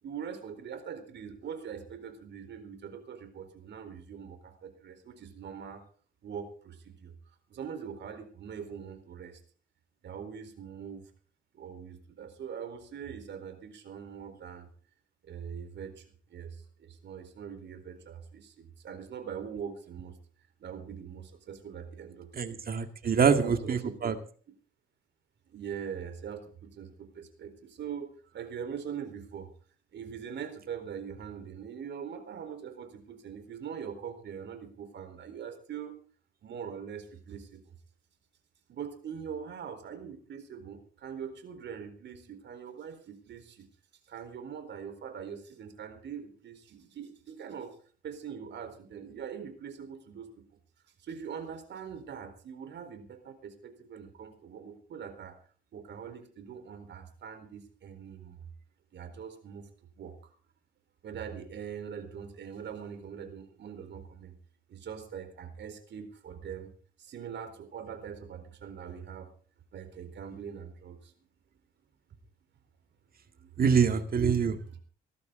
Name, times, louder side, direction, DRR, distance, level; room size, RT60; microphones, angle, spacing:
voice 1, 0.0-5.8 6.2-7.1 7.5-9.4 10.0-11.0 11.5-14.7 15.2-20.2 20.6-22.6 23.0-24.1 25.5-29.5 29.9-35.9 36.4-37.7 38.7-43.7 44.1-47.8 48.0-50.3 51.0-55.4 55.7-58.4 58.9-59.7 60.0-60.3 61.0-64.3 64.7-66.7 67.0-69.3 69.7-71.1 73.4-73.6 74.4-74.7, right 7 dB, 65° right, 7 dB, 4.2 m, -42 dB
voice 2, 22.4-24.1 73.6-74.6, right 6 dB, 50° right, 8 dB, 2.1 m, -25 dB
19.5 x 13.5 x 3.9 m, 0.42 s
cardioid pair, 90°, 20 cm